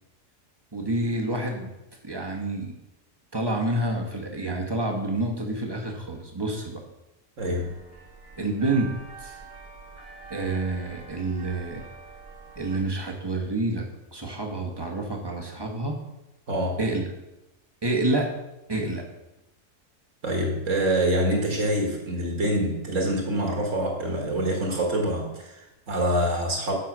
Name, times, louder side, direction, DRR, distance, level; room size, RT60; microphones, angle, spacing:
voice 1, 0.7-1.7 2.0-2.7 3.3-6.8 8.4-8.9 9.2-9.4 10.3-11.8 12.6-13.8 14.1-16.0 16.8-17.0 17.8-18.3 18.7-19.0, right 2 dB, 20° right, 1 dB, 1.2 m, -28 dB
voice 2, 7.4-7.8 16.5-16.8 20.2-26.7, right 1 dB, 65° right, 0 dB, 1.9 m, -26 dB
sound 1, 7.4-12.8, right 4 dB, 85° right, 2.1 m, -45 dB
7.8 x 5.8 x 6.1 m, 0.95 s
omnidirectional pair, 1.4 m